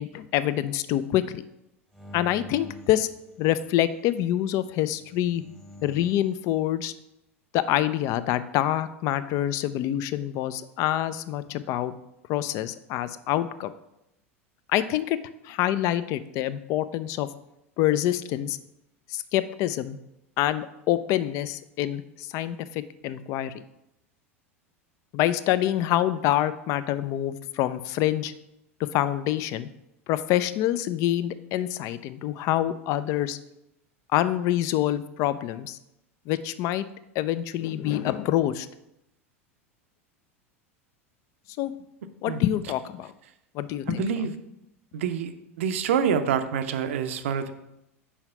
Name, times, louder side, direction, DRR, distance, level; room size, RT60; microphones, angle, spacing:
voice 1, 0.0-1.4 2.1-3.1 3.4-5.4 5.8-6.9 7.5-11.9 12.3-13.7 14.7-15.2 15.4-17.3 17.8-18.6 19.1-20.0 20.4-23.5 25.1-28.3 28.8-29.7 30.1-33.4 34.1-35.8 36.3-36.9 37.2-38.7 41.6-41.7 42.2-43.1 43.5-44.1, left 13 dB, 45° left, 14 dB, 0.4 m, -26 dB
sound 1, 1.9-3.9 4.9-6.4, left 1 dB, 5° left, 1.1 m, -46 dB
voice 2, 43.9-44.3 44.9-45.3 45.6-47.5, right 7 dB, 65° right, 9 dB, 0.6 m, -26 dB
5.7 x 4.8 x 5.4 m, 0.86 s
figure-of-eight pair, 85°, 8 cm